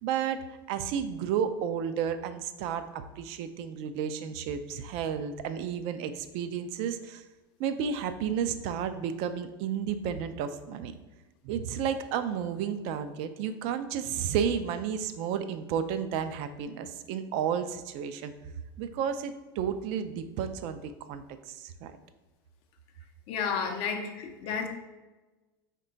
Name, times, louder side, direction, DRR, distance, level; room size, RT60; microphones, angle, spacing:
voice 1, 0.0-0.4 0.7-7.2 7.6-10.9 11.4-18.3 18.8-21.9, right 8 dB, 55° right, 10 dB, 0.4 m, -32 dB
voice 2, 23.3-24.7, left 6 dB, 50° left, 4 dB, 0.5 m, -31 dB
3.6 x 2.2 x 3.8 m, 1.1 s
hypercardioid pair, 95°, 12 cm